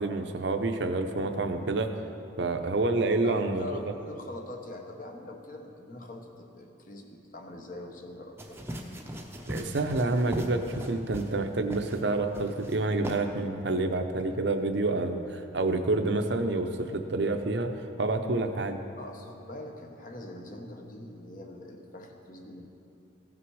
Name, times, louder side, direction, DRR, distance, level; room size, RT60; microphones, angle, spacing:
voice 1, 0.0-2.0 2.4-3.8 9.5-18.8, right 2 dB, 60° right, 6 dB, 0.7 m, -28 dB
voice 2, 3.2-8.6 19.0-22.7, left 1 dB, 40° left, 3 dB, 1.0 m, -43 dB
sound 1, 8.4-11.4 11.7-12.0 12.3-12.7 13.0-13.2, equal, 10° right, 0.7 m, -38 dB
16.0 x 6.0 x 4.8 m, 2.9 s
head